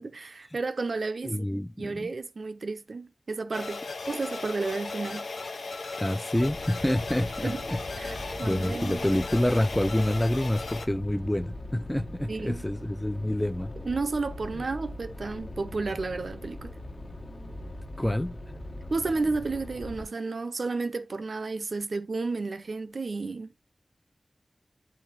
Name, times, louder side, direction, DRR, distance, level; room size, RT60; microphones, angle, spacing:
voice 1, 0.0-1.5 1.8-5.3 7.4-7.6 8.0-9.0 12.3-12.6 13.8-16.7 18.9-23.5, right 3 dB, 65° right, 0.5 m, -32 dB
voice 2, 1.2-2.1 6.0-13.7 14.5-14.6 18.0-18.4, left 1 dB, 10° left, 0.3 m, -28 dB
sound 1, 3.5-10.9, left 3 dB, 80° left, 0.6 m, -36 dB
sound 2, 6.3-20.0, left 1 dB, 60° left, 1.2 m, -41 dB
7.6 x 3.2 x 4.2 m
wide cardioid pair, 80°, 0 cm